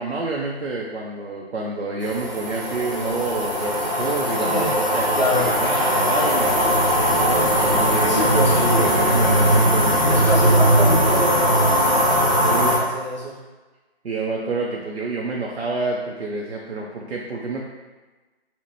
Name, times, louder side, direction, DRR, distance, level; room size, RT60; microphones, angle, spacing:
voice 1, 0.0-5.1 5.4-10.2 12.4-12.9 14.0-17.6, right 3 dB, 90° right, -2 dB, 0.6 m, -28 dB
sound 1, 2.0-12.8, equal, 30° right, 0.5 m, -19 dB
voice 2, 4.4-4.8 5.1-5.6 8.1-9.1 10.0-12.3 12.6-13.4, equal, 40° left, -6 dB, 0.8 m, -26 dB
4.1 x 2.1 x 3.0 m, 1.2 s
figure-of-eight pair, 170°, 32 cm